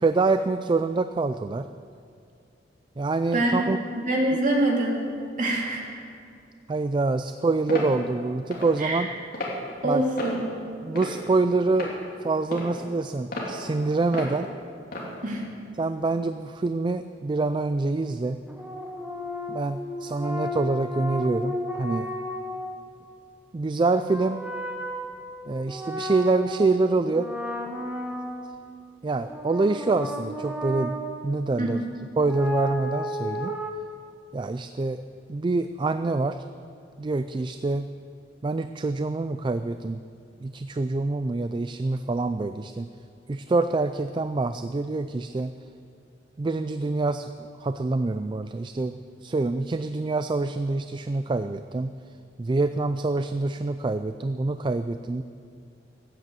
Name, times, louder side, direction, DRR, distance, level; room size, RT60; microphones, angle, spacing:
voice 1, 0.0-1.7 3.0-3.8 6.7-9.1 9.8-10.0 10.8-11.9 12.2-14.5 15.8-18.4 19.5-22.1 23.5-24.4 25.5-27.3 29.0-31.0 31.2-31.8 32.2-33.5 34.3-35.0 35.3-36.4 37.0-37.9 38.4-40.0 40.4-42.9 43.3-45.5 46.4-47.3 47.6-51.9 52.4-55.2, right 3 dB, 25° right, 10 dB, 0.3 m, -26 dB
voice 2, 3.3-3.7 3.9-5.0 5.4-5.8 8.8-9.1 9.8-10.4 15.2-15.4 31.6-31.7, right 1 dB, 45° right, -1 dB, 2.6 m, -24 dB
sound 1, 7.7-7.9 8.5-8.7 9.3-9.6 10.2-10.4 11.0-11.3 11.8-11.9 12.5-12.7 13.3-13.5 14.1-14.3 14.9-15.1, left 2 dB, 55° left, 2.8 m, -32 dB
sound 2, 18.5-22.7 23.8-26.8 27.1-28.7 29.3-31.2 32.2-33.7, equal, 10° right, 1.1 m, -33 dB
15.0 x 9.2 x 7.5 m, 2.4 s
head